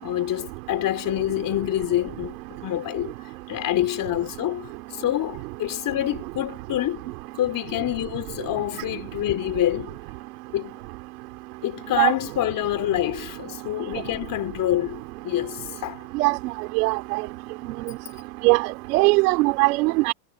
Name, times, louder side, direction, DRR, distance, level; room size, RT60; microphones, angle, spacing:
voice 1, 0.0-3.1 3.5-7.0 7.4-10.0 10.5-10.8 11.6-16.0, left 13 dB, 45° left, 4.0 m, -27 dB
voice 2, 16.8-17.2 18.4-20.1, right 25 dB, 90° right, 3.4 m, -20 dB
supercardioid pair, 125°, 45 cm